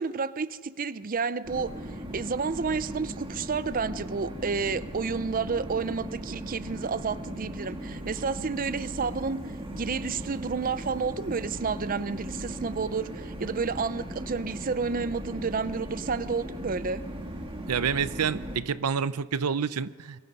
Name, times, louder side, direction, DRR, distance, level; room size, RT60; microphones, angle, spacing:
voice 1, 0.0-1.7 2.1-9.4 9.8-17.0, right 5 dB, 40° right, 15 dB, 0.6 m, -30 dB
sound 1, 1.4-18.6, right 1 dB, 25° right, 1.9 m, -38 dB
voice 2, 17.7-20.2, right 6 dB, 90° right, 16 dB, 0.6 m, -28 dB
27.5 x 23.0 x 5.3 m, 1.5 s
head